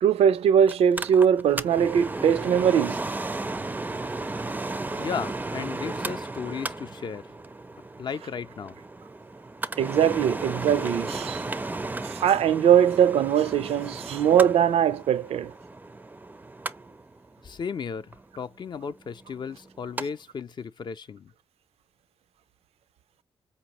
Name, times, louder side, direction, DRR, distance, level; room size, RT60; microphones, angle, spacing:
voice 1, 0.0-3.0 4.9-5.0 9.8-11.5 12.0-15.5, right 8 dB, 85° right, 0.4 m, -21 dB
Mechanical fan, 0.7-20.1 20.4-20.5, right 2 dB, 15° right, 0.4 m, -35 dB
voice 2, 5.0-7.3 8.0-8.8 17.4-21.3, left 6 dB, 50° left, 0.4 m, -35 dB
4.7 x 2.6 x 2.9 m
cardioid pair, 80°, 10 cm